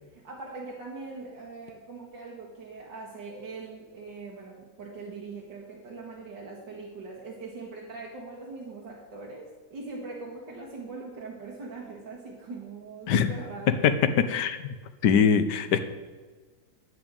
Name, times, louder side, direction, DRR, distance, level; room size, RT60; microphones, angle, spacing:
voice 1, 0.1-13.9, right 3 dB, 85° right, -3 dB, 2.3 m, -41 dB
voice 2, 14.3-14.6 15.0-15.8, left 6 dB, 75° left, 10 dB, 1.5 m, -22 dB
9.6 x 8.1 x 8.9 m, 1.3 s
omnidirectional pair, 1.9 m